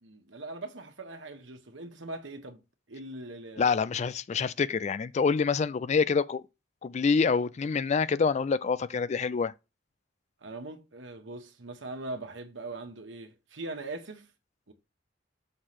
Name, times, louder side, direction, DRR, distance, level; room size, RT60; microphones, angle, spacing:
voice 1, 0.0-2.6 2.9-3.8 10.4-14.3 14.7-14.8, right 2 dB, 80° right, 1.2 m, -41 dB
voice 2, 3.6-6.4 6.8-9.5, left 5 dB, 40° left, 0.3 m, -26 dB
6.4 x 3.2 x 5.7 m
head